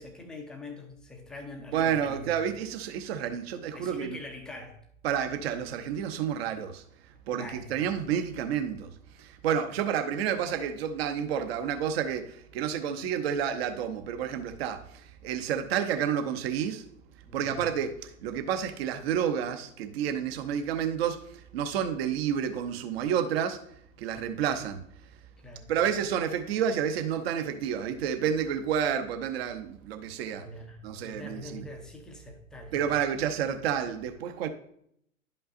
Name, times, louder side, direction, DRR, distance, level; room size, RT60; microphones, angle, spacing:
voice 1, 0.0-2.3 3.7-4.8 7.3-7.8 17.3-17.6 25.4-25.7 30.3-32.8, left 2 dB, ahead, 0.4 m, -44 dB
voice 2, 1.7-4.2 5.0-6.8 7.3-8.9 9.2-16.8 17.3-23.6 24.0-24.8 25.7-30.5 30.8-31.6 32.7-34.5, right 8 dB, 45° right, 0.9 m, -30 dB
11.0 x 5.4 x 2.6 m
hypercardioid pair, 120°, 41 cm